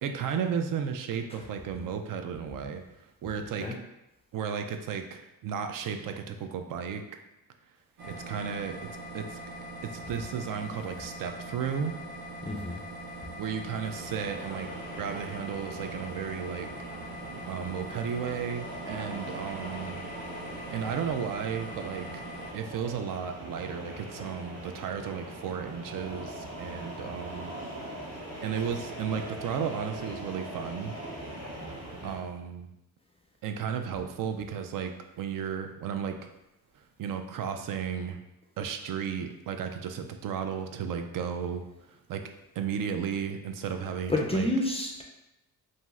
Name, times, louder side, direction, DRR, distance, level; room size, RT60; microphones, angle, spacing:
voice 1, 0.0-2.8 3.2-3.7 4.3-7.0 8.0-9.4 9.8-11.9 13.4-16.7 17.5-20.0 20.7-22.2 22.5-27.6 28.4-31.0 32.0-32.7 33.4-36.3 37.0-38.2 38.6-42.2 42.6-44.5, right 7 dB, 60° right, 7 dB, 0.4 m, -34 dB
sound 1, 8.0-22.5, right 1 dB, 90° right, 0.7 m, -42 dB
voice 2, 12.4-12.8 44.1-45.0, left 2 dB, 15° left, 0 dB, 0.3 m, -29 dB
sound 2, 13.8-32.2, right 1 dB, 40° right, 1.1 m, -41 dB
2.7 x 2.3 x 3.1 m, 0.90 s
cardioid pair, 75°, 38 cm